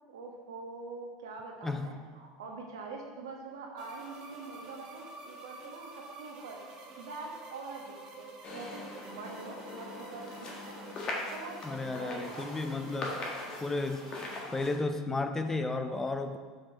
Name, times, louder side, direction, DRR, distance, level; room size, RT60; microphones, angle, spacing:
voice 1, 0.1-10.8 11.1-11.6 12.0-12.5, right 4 dB, 85° right, 0 dB, 1.2 m, -44 dB
voice 2, 1.6-1.9 11.6-13.2 13.6-14.2 14.5-16.4, left 3 dB, 15° left, 7 dB, 0.5 m, -33 dB
sound 1, 3.8-14.4, right 2 dB, 45° right, 1.9 m, -49 dB
sound 2, 8.4-14.8, left 2 dB, 40° left, 1.5 m, -41 dB
5.9 x 5.0 x 4.8 m, 1.5 s
hypercardioid pair, 90°, 2 cm